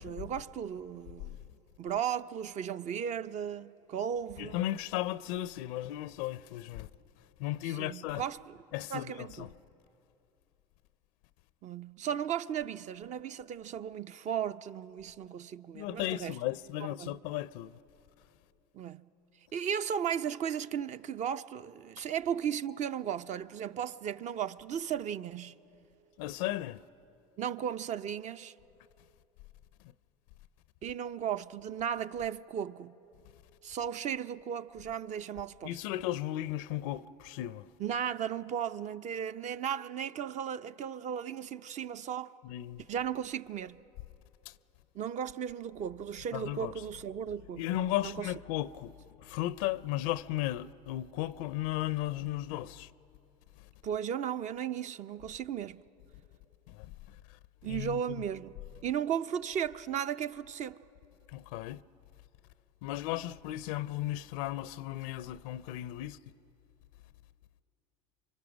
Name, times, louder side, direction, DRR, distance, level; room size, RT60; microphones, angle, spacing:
voice 1, 0.0-1.4 1.8-4.6 7.6-8.6 8.9-9.5 11.6-16.4 17.0-17.2 18.7-19.1 19.5-25.6 27.4-28.5 30.8-33.0 33.6-35.8 37.8-42.3 42.8-43.8 44.9-47.7 48.0-48.3 53.8-55.8 57.6-60.8, right 8 dB, 45° right, 0.6 m, -36 dB
voice 2, 4.4-6.9 7.4-8.2 8.7-9.5 15.7-17.7 26.2-26.8 35.6-37.7 42.4-42.8 44.5-44.6 46.3-46.7 47.6-48.9 49.2-52.9 56.8-56.9 57.6-58.0 61.3-61.8 62.8-66.2, left 14 dB, 70° left, 0.5 m, -35 dB
27.0 x 24.5 x 6.1 m
hypercardioid pair, 85°, 17 cm